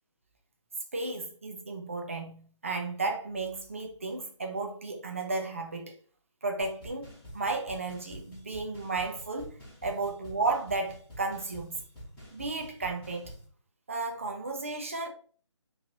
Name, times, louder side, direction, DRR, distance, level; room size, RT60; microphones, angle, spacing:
voice 1, 0.9-6.0 6.4-9.5 9.8-11.7 12.3-13.3 13.9-15.1, right 3 dB, 25° right, 0.5 m, -33 dB
sound 1, 6.6-13.4, equal, 5° left, 1.0 m, -48 dB
3.1 x 2.8 x 3.8 m
hypercardioid pair, 175°, 16 cm